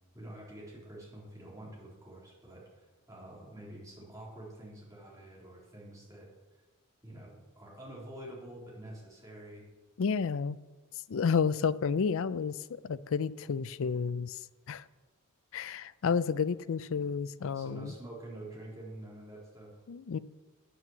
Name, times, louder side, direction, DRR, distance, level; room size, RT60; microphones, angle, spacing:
voice 1, 0.1-6.3 7.0-9.6 17.5-19.7, right 1 dB, 15° right, 3.6 m, -47 dB
voice 2, 10.0-10.6 11.1-14.4 14.7-14.8 15.5-17.9 19.9-20.2, left 6 dB, 60° left, 0.4 m, -31 dB
9.3 x 8.4 x 7.3 m
head